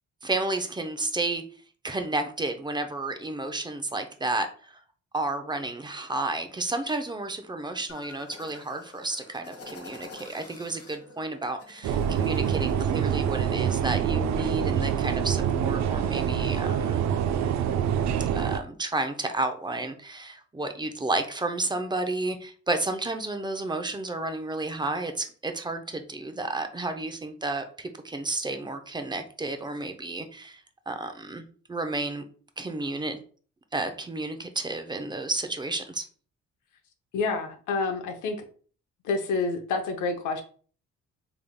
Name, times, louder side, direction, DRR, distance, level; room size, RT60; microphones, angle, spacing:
voice 1, 0.2-1.4 1.8-4.7 5.1-17.0 18.3-30.6 30.9-31.4 31.7-32.2 32.6-33.2 33.7-36.0, right 2 dB, 15° right, 6 dB, 0.5 m, -31 dB
weirdsci-finoise, 7.9-13.5, left 3 dB, 50° left, 1.3 m, -48 dB
sound 1, 11.8-18.6, right 8 dB, 65° right, 0.4 m, -26 dB
voice 2, 37.1-38.4 39.0-40.4, left 4 dB, 80° left, 4 dB, 0.7 m, -28 dB
3.5 x 3.4 x 2.2 m, 0.42 s
cardioid pair, 90°, 30 cm